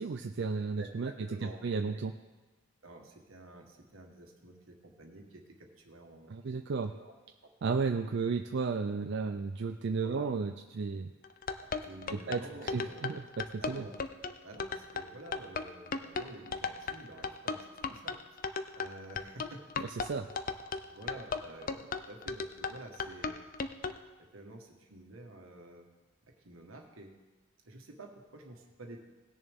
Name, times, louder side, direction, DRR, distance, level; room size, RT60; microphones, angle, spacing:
voice 1, 0.0-1.1 1.6-2.1 6.3-6.9 7.6-11.1 12.1-12.4 12.7-13.2 13.7-13.8 20.0-20.3, right 4 dB, 55° right, 6 dB, 0.4 m, -33 dB
voice 2, 0.8-1.6 1.9-2.0 2.8-6.5 6.9-7.1 7.4-7.5 10.0-10.3 11.6-13.1 13.6-14.0 14.4-19.6 20.9-23.4 24.2-25.9 26.2-27.1 27.6-29.0, right 2 dB, 80° right, 2 dB, 1.5 m, -50 dB
sound 1, 11.2-24.0, left 5 dB, 40° left, 0.5 m, -36 dB
18.0 x 6.9 x 3.6 m, 1.2 s
head